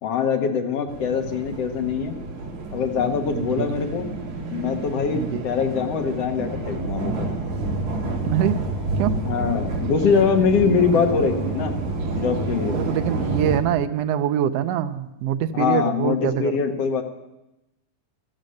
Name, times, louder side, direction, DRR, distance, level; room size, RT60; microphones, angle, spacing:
voice 1, 0.0-2.2 2.7-4.1 4.5-7.3 9.2-11.7 12.2-12.9 15.5-17.0, left 6 dB, 60° left, 4 dB, 2.1 m, -23 dB
sound 1, 0.9-13.6, right 2 dB, 65° right, 3.3 m, -29 dB
voice 2, 3.3-3.7 5.1-5.4 8.3-8.6 9.0-9.1 12.7-16.5, right 10 dB, 80° right, 9 dB, 1.4 m, -24 dB
14.5 x 13.0 x 6.5 m, 0.94 s
omnidirectional pair, 3.6 m